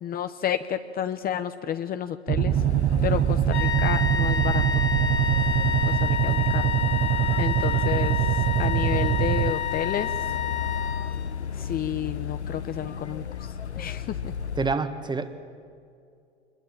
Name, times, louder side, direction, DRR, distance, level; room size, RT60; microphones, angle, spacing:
voice 1, 0.0-2.6 3.0-4.6 5.9-6.7 7.4-8.2 8.6-10.1 11.6-13.2 13.8-14.3, left 10 dB, 30° left, 10 dB, 0.9 m, -30 dB
sound 1, 2.3-9.5, right 11 dB, 30° right, 0.9 m, -23 dB
sound 2, 2.5-14.7, left 6 dB, 90° left, 0.8 m, -33 dB
sound 3, 3.5-11.4, left 8 dB, 70° left, 3.6 m, -30 dB
voice 2, 14.6-15.3, right 4 dB, 15° right, 10 dB, 1.7 m, -27 dB
26.0 x 21.5 x 9.0 m, 2.4 s
figure-of-eight pair, 90°, 32 cm